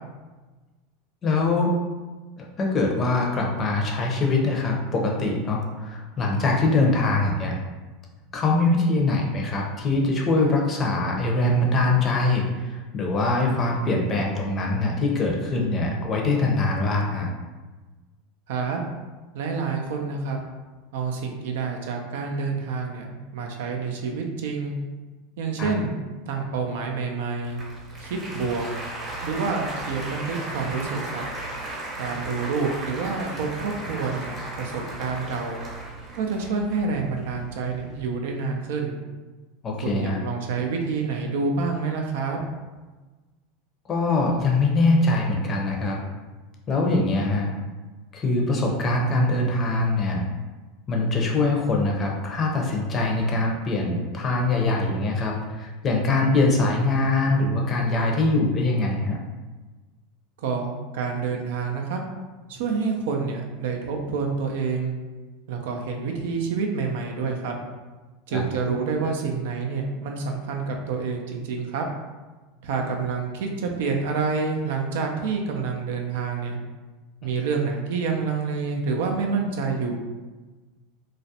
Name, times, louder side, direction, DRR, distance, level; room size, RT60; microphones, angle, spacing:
voice 1, 1.2-1.7 2.4-7.6 8.3-17.3 25.6-25.7 39.6-40.2 43.9-46.0 46.7-47.5 48.1-50.2 50.9-59.2 68.3-68.4, left 2 dB, 30° left, 0 dB, 0.5 m, -23 dB
voice 2, 18.5-18.8 19.3-20.4 20.9-24.7 25.4-27.6 28.0-28.6 29.2-31.2 32.0-35.6 36.1-39.0 39.8-42.4 60.4-62.0 62.5-65.0 65.5-67.5 68.3-71.8 72.6-76.6 77.2-80.0, right 4 dB, 75° right, 2 dB, 0.4 m, -28 dB
Applause, 27.4-38.0, right 2 dB, 30° right, 0.7 m, -36 dB
2.4 x 2.0 x 2.7 m, 1.3 s
supercardioid pair, 110°, 0 cm